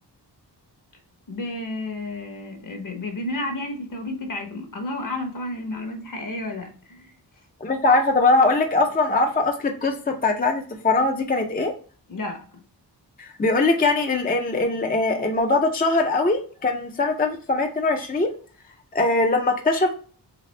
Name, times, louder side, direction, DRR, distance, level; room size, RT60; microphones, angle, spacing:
voice 1, 1.3-7.1 12.1-12.4, left 2 dB, 50° left, 1.0 m, -31 dB
voice 2, 7.6-11.7 13.2-18.3 18.9-19.9, left 3 dB, 20° left, 0.4 m, -21 dB
4.0 x 3.5 x 3.2 m
wide cardioid pair, 170°, 42 cm